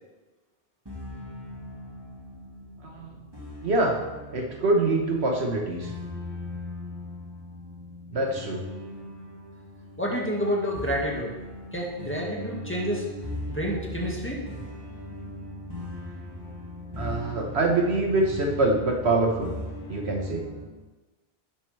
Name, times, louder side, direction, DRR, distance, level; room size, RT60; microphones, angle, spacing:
sound 1, 0.9-20.7, left 1 dB, 20° right, 2.0 m, -39 dB
voice 1, 2.8-3.1 3.6-4.0 4.3-5.9 8.1-8.7 17.0-19.5 19.9-20.5, right 2 dB, 75° right, 1 dB, 1.7 m, -25 dB
voice 2, 10.0-11.3 11.7-13.1 13.5-14.4, equal, 10° left, -4 dB, 2.0 m, -29 dB
12.0 x 9.7 x 3.5 m, 1.2 s
omnidirectional pair, 1.1 m